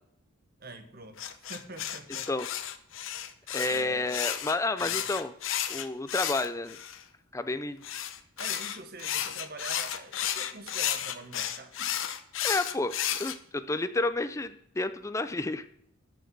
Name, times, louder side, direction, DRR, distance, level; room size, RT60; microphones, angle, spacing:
voice 1, 0.6-2.3 3.7-4.0 4.8-5.0 8.4-12.0, right 2 dB, 45° right, 8 dB, 1.2 m, -45 dB
sound 1, 1.2-7.0 7.8-13.4, left 10 dB, 60° left, 0.8 m, -33 dB
voice 2, 3.5-5.3 5.7-6.8 7.3-7.8 12.4-12.9 13.2-15.6, left 2 dB, 15° left, 10 dB, 0.4 m, -30 dB
13.5 x 6.5 x 6.1 m, 0.71 s
head